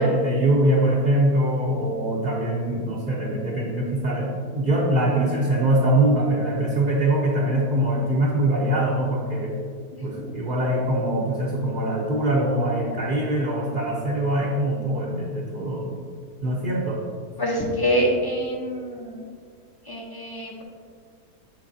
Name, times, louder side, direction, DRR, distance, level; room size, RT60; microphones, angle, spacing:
voice 1, 0.0-9.6 10.0-16.0 16.4-17.0, right 1 dB, 35° right, -5 dB, 1.0 m, -23 dB
voice 2, 17.4-19.2 19.9-20.6, equal, 15° left, -2 dB, 0.9 m, -25 dB
9.0 x 7.0 x 2.8 m, 2.1 s
omnidirectional pair, 1.7 m